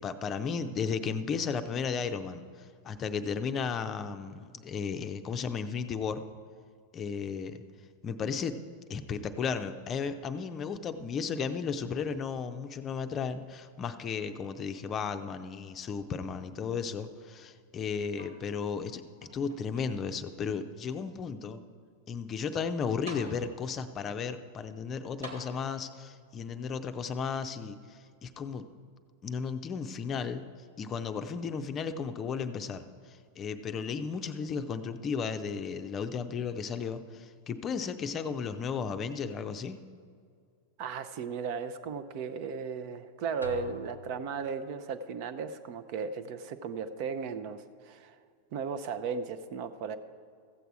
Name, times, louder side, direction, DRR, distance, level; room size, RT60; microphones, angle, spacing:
voice 1, 0.0-6.2 6.9-7.6 8.0-8.6 8.9-19.0 19.3-21.6 22.1-28.7 29.2-30.5 30.8-39.8, left 6 dB, 25° left, 9 dB, 0.6 m, -34 dB
sound 1, 18.1-18.8 19.2-20.2 20.9-21.0 22.6-22.7 23.1-23.8 25.2-26.1 27.1-27.2, right 1 dB, 75° right, 2.0 m, -48 dB
voice 2, 40.8-48.2 48.5-50.0, right 5 dB, 45° right, 11 dB, 0.6 m, -36 dB
sound 2, 43.4-44.9, left 2 dB, 85° left, 0.7 m, -46 dB
14.5 x 8.0 x 4.8 m, 2.1 s
figure-of-eight pair, 90°, 0 cm